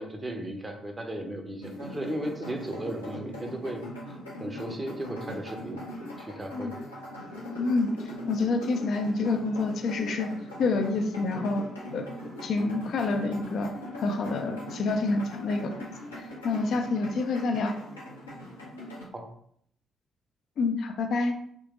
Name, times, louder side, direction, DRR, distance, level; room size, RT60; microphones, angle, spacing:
voice 1, 0.0-3.8 4.4-5.8 6.2-6.8 19.1-19.3, right 1 dB, 20° right, 3 dB, 0.9 m, -35 dB
sound 1, 1.6-19.1, left 1 dB, 85° left, 0.9 m, -40 dB
voice 2, 7.5-7.9 8.3-10.3 10.6-11.6 11.9-13.7 14.0-15.7 16.2-17.8 20.6-21.3, left 3 dB, 55° left, 5 dB, 0.5 m, -28 dB
3.7 x 2.8 x 3.7 m, 0.67 s
figure-of-eight pair, 40°, 0 cm